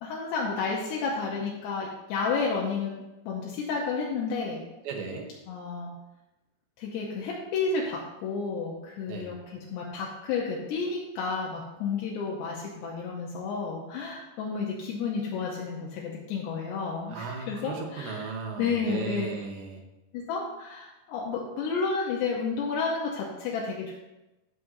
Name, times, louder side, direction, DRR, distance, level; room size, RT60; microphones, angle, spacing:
voice 1, 0.0-2.9 3.3-4.6 5.5-5.9 6.8-19.3 20.1-23.9, left 4 dB, 75° left, -3 dB, 3.0 m, -31 dB
voice 2, 4.8-5.3 9.1-9.3 17.1-19.8, right 5 dB, 80° right, 2 dB, 3.4 m, -36 dB
14.0 x 6.3 x 2.7 m, 1.0 s
omnidirectional pair, 5.1 m